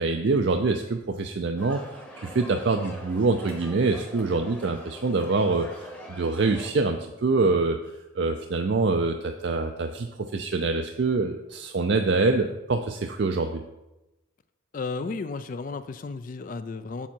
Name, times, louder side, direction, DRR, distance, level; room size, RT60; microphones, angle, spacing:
voice 1, 0.0-1.8 2.2-7.8 8.2-13.6, right 3 dB, 60° right, 5 dB, 0.4 m, -25 dB
sound 1, 1.6-6.7, left 1 dB, 5° left, 0.9 m, -43 dB
voice 2, 14.7-17.1, left 4 dB, 40° left, 12 dB, 0.3 m, -33 dB
7.2 x 7.0 x 4.5 m, 0.98 s
head